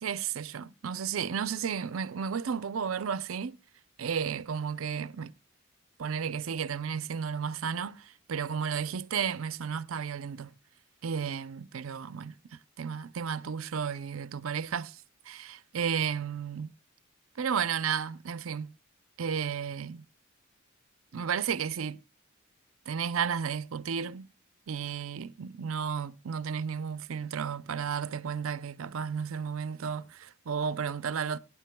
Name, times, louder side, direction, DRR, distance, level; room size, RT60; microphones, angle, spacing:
voice 1, 0.0-3.6 4.0-5.3 6.0-10.5 11.0-16.7 17.4-18.7 19.2-20.0 21.1-22.0 22.9-24.3 24.7-31.4, right 7 dB, 80° right, 0.5 m, -33 dB
25.0 x 9.8 x 2.2 m
head